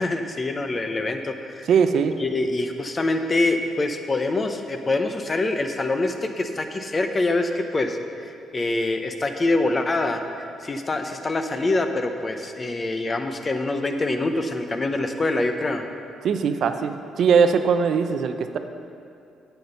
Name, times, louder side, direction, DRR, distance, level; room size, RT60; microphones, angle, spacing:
voice 1, 0.0-1.7 2.2-8.0 8.2-15.8, left 2 dB, 30° left, 6 dB, 0.8 m, -25 dB
voice 2, 1.7-2.2 16.2-18.6, right 6 dB, 65° right, 8 dB, 0.5 m, -20 dB
9.1 x 8.0 x 5.6 m, 2.6 s
cardioid pair, 90°, 0 cm